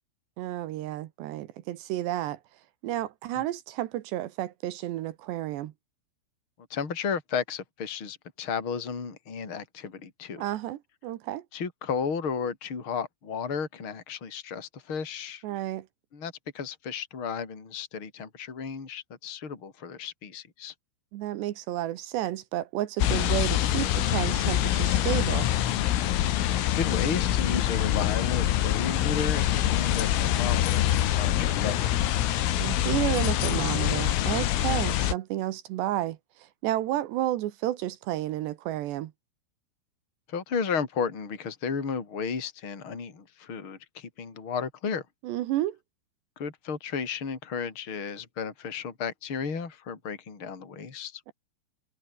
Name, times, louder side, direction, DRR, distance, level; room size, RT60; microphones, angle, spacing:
voice 1, 0.4-2.4 2.8-5.7 10.4-11.4 15.4-15.9 21.1-25.5 32.6-39.1 45.2-45.8 51.3-51.4, right 14 dB, 70° right, 2.8 m, -31 dB
voice 2, 6.7-10.4 11.5-15.4 16.1-20.7 26.7-32.2 40.3-45.0 46.4-51.2, left 6 dB, 25° left, 4.2 m, -33 dB
sound 1, 23.0-35.1, left 12 dB, 80° left, 4.7 m, -25 dB
omnidirectional pair, 6.0 m